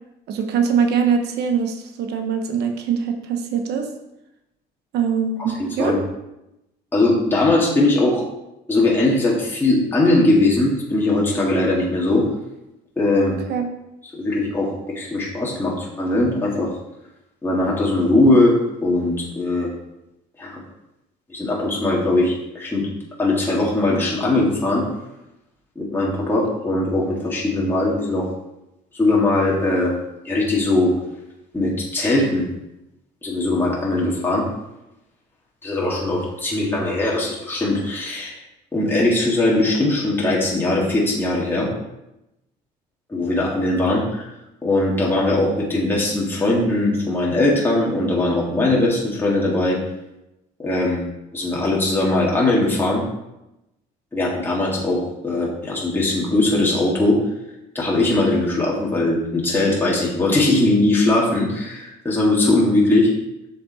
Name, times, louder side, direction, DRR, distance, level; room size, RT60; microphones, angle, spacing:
voice 1, 0.3-3.9 4.9-6.0 13.5-13.6, right 6 dB, 75° right, 5 dB, 1.0 m, -22 dB
voice 2, 5.6-6.0 6.9-8.2 8.7-12.3 13.0-13.4 14.1-16.7 17.4-19.7 20.4-20.6 21.3-22.9 23.2-24.9 25.8-28.3 29.0-29.9 30.2-30.9 31.5-32.5 33.2-34.5 35.6-38.4 38.7-41.7 43.1-44.3 44.6-49.8 50.6-51.0 51.3-53.0 54.1-57.2 57.7-63.1, left 2 dB, 15° left, -5 dB, 2.0 m, -20 dB
7.2 x 5.6 x 4.1 m, 0.90 s
cardioid pair, 110°, 17 cm